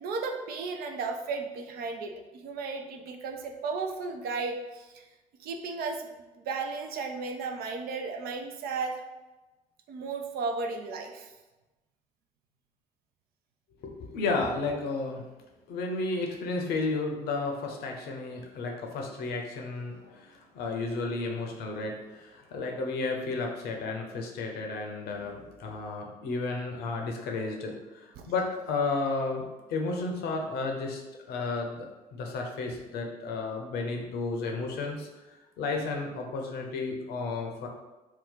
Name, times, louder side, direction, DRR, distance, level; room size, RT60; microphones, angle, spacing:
voice 1, 0.0-2.1 2.4-5.1 5.4-9.0 9.9-11.3 28.2-28.3, right 4 dB, 60° right, 4 dB, 0.5 m, -34 dB
voice 2, 13.8-15.2 15.7-31.0 31.3-35.1 35.6-37.7, left 3 dB, 60° left, 2 dB, 0.6 m, -32 dB
2.7 x 2.2 x 3.9 m, 1.1 s
hypercardioid pair, 50°, 18 cm